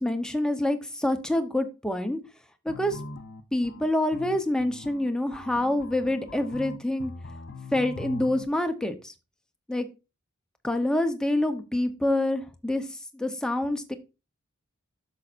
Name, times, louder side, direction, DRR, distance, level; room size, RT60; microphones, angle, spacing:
voice 1, 0.0-2.2 2.6-3.0 3.5-7.1 7.7-9.1 9.7-9.9 10.6-13.9, left 1 dB, 5° left, 7 dB, 0.8 m, -27 dB
sound 1, 2.7-8.4, left 1 dB, 55° left, 0.7 m, -41 dB
10.5 x 6.9 x 2.5 m, 0.29 s
head